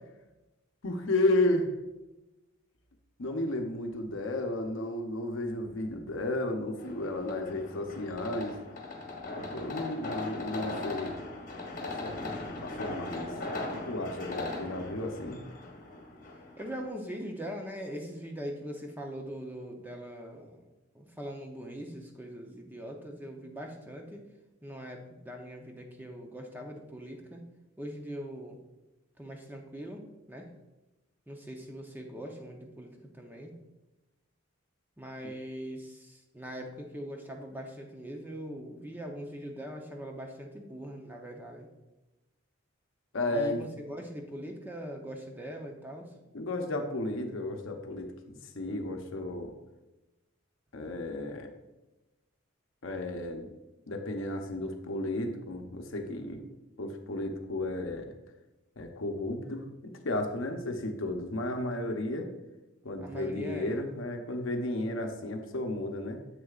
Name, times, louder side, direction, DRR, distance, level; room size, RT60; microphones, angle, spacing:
voice 1, 0.8-1.7 3.2-8.6 9.4-11.2 11.8-13.3 13.7-15.4 43.1-43.6 46.3-49.5 50.7-51.5 52.8-53.5 53.9-56.4 56.8-58.1 58.8-62.3 62.8-66.2, left 1 dB, 70° left, 5 dB, 0.8 m, -33 dB
sound 1, 6.8-16.9, left 2 dB, 40° left, 1.2 m, -39 dB
voice 2, 16.6-20.6 20.9-24.2 24.6-27.4 27.8-28.6 29.2-30.0 30.3-30.5 31.3-33.5 35.0-41.7 43.3-46.1 63.0-63.8, equal, 10° right, 1 dB, 0.7 m, -41 dB
7.6 x 6.5 x 2.4 m, 1.0 s
head